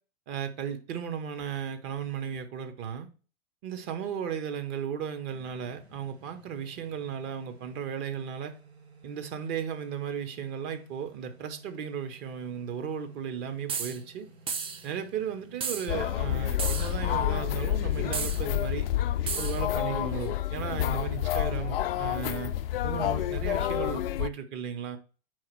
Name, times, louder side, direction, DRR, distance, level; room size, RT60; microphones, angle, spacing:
voice 1, 0.3-3.1 3.6-8.6 9.0-14.3 14.8-18.9 19.4-22.5 22.8-25.0, right 8 dB, 35° right, 1.1 m, -35 dB
sound 1, 5.3-19.5, right 2 dB, 85° right, 1.8 m, -55 dB
sound 2, 13.7-14.0 14.5-14.8 15.6-15.9 16.6-17.0 18.1-18.4 19.3-19.6, right 6 dB, 15° right, 0.6 m, -33 dB
sound 3, 15.9-24.3, left 12 dB, 65° left, 0.5 m, -29 dB
4.8 x 4.2 x 5.9 m
hypercardioid pair, 110°, 31 cm